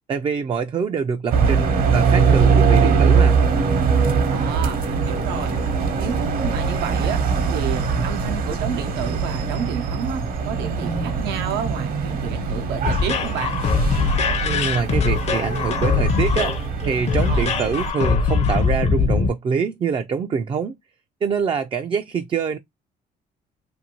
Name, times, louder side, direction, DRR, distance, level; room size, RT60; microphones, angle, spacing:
voice 1, 0.1-3.4 14.4-16.5 16.8-20.8 21.2-22.6, right 6 dB, 30° right, 0.4 m, -25 dB
sound 1, 1.3-17.9, right 5 dB, 60° right, 0.9 m, -22 dB
voice 2, 4.3-5.6 6.0-7.2 7.5-13.6 17.3-17.5, right 7 dB, 90° right, 0.7 m, -30 dB
sound 2, 12.8-19.3, left 5 dB, 40° left, 0.6 m, -22 dB
2.6 x 2.6 x 2.8 m
cardioid pair, 110°, 17 cm